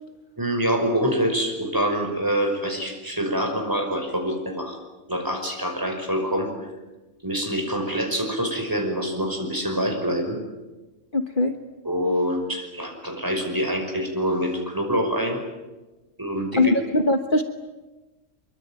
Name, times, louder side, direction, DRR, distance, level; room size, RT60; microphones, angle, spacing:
voice 1, 0.4-4.8 5.1-6.7 7.2-10.4 11.8-15.4 16.2-16.7, equal, 15° right, 3 dB, 5.6 m, -25 dB
voice 2, 11.1-11.5 16.6-17.4, left 2 dB, 45° left, 6 dB, 1.4 m, -21 dB
24.5 x 23.5 x 9.1 m, 1.2 s
omnidirectional pair, 1.3 m